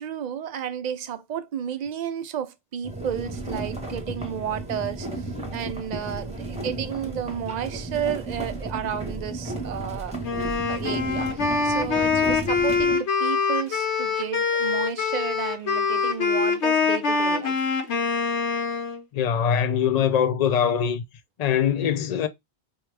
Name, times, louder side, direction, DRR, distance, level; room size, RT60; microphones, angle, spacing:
voice 1, 0.0-10.2 10.7-17.6, right 9 dB, 55° right, 0.5 m, -32 dB
sound 1, 2.8-13.0, right 2 dB, 5° right, 0.8 m, -34 dB
Wind instrument woodwind instrument, 10.2-19.0, left 5 dB, 85° left, 1.1 m, -24 dB
voice 2, 19.1-21.0 21.4-22.3, left 8 dB, 60° left, 0.4 m, -22 dB
4.3 x 2.3 x 3.2 m
omnidirectional pair, 1.1 m